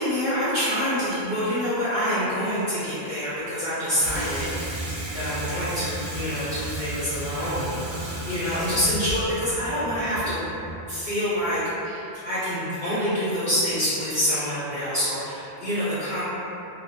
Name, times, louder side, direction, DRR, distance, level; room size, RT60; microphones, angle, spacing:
voice 1, 0.0-4.5 4.8-10.4 10.9-16.2, equal, 50° left, -15 dB, 1.0 m, -26 dB
Water tap faucet / Sink (filling or washing), 4.0-11.0, right 1 dB, 55° right, 0.7 m, -33 dB
2.7 x 2.1 x 3.1 m, 2.9 s
omnidirectional pair, 1.1 m